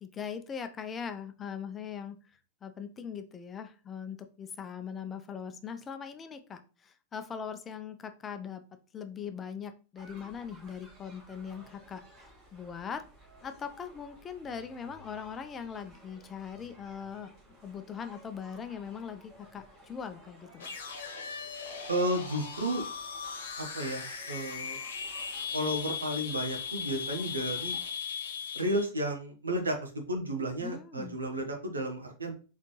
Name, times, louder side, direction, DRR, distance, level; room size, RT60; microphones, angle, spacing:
voice 1, 0.0-8.6 8.9-13.0 13.4-17.3 17.6-20.6 30.6-31.2, left 7 dB, 20° left, 8 dB, 0.5 m, -41 dB
sound 1, 10.0-27.9, equal, 30° right, 2.3 m, -56 dB
sound 2, 20.6-28.9, left 6 dB, 60° left, 1.0 m, -38 dB
voice 2, 21.9-22.8 23.6-24.8 25.5-27.8 28.5-32.3, right 1 dB, 75° right, 3 dB, 1.1 m, -32 dB
4.1 x 4.0 x 3.1 m, 0.35 s
figure-of-eight pair, 90°, 0 cm